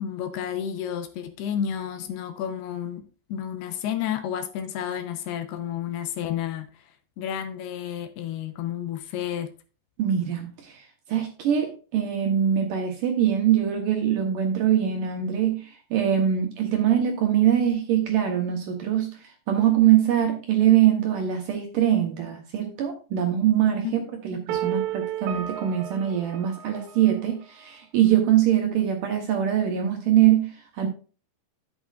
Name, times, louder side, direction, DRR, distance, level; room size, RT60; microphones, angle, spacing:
voice 1, 0.0-3.0 3.3-6.7 7.2-9.5 23.8-24.0, left 9 dB, 75° left, 2.7 m, -31 dB
voice 2, 10.0-30.9, right 10 dB, 70° right, 2.2 m, -23 dB
sound 1, 24.5-27.4, right 12 dB, 85° right, 3.0 m, -32 dB
11.5 x 8.3 x 2.5 m
omnidirectional pair, 4.9 m